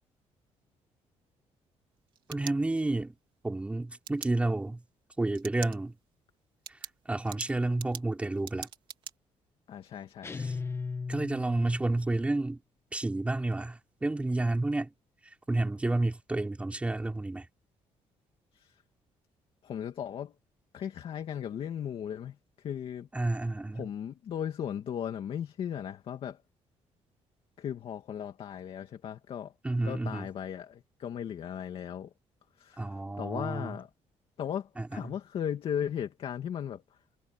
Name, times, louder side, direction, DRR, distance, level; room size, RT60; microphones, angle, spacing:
sound 1, 1.9-3.1 4.0-4.3 5.3-5.8 6.1-6.2 6.6-9.1, right 8 dB, 45° right, 3.5 m, -43 dB
voice 1, 2.3-3.1 3.4-4.8 5.2-5.9 7.1-8.7 10.4-10.5 11.1-12.6 12.9-14.9 15.5-17.4 23.1-23.9 29.6-30.3 32.8-33.7 34.8-35.1, right 2 dB, 10° right, 3.6 m, -30 dB
voice 2, 9.7-10.5 18.5-18.7 19.6-20.3 20.7-23.1 23.7-26.4 27.6-29.5 29.8-32.1 32.6-33.9 34.4-36.8, left 9 dB, 50° left, 2.4 m, -37 dB
sound 2, 10.2-11.9, left 4 dB, 20° left, 1.3 m, -36 dB
cardioid pair, 160°, 12 cm